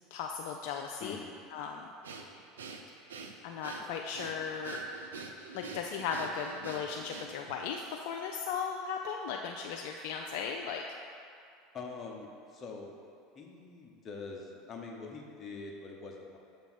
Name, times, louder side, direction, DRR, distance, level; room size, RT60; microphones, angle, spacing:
voice 1, 0.1-1.2 1.5-1.9 3.4-4.8 5.5-10.8, left 6 dB, 60° left, 2 dB, 0.3 m, -37 dB
voice 2, 1.0-1.3 11.7-13.0 13.3-16.4, left 4 dB, 30° left, 0 dB, 0.9 m, -44 dB
Breathing, 2.0-7.6, right 4 dB, 75° right, 0.4 m, -46 dB
6.9 x 4.0 x 4.1 m, 2.5 s
figure-of-eight pair, 75°, 0 cm